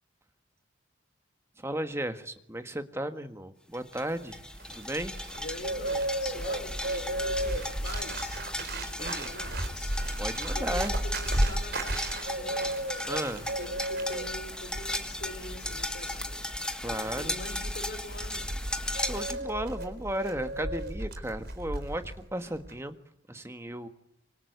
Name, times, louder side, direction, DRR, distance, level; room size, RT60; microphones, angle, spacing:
voice 1, 1.6-4.4 4.7-5.2 9.0-9.3 10.2-10.9 13.1-13.5 16.8-17.4 18.9-23.0 23.3-23.9, right 1 dB, 15° right, 9 dB, 1.6 m, -35 dB
sound 1, 3.7-19.3, left 1 dB, 5° left, 1.5 m, -36 dB
Bird, 4.4-22.2 22.4-22.8, right 1 dB, 50° right, 4.1 m, -34 dB
voice 2, 5.3-9.9 10.5-12.8 13.3-16.5 16.8-18.5, left 2 dB, 60° left, 6 dB, 5.5 m, -44 dB
25.5 x 24.5 x 9.6 m, 0.75 s
head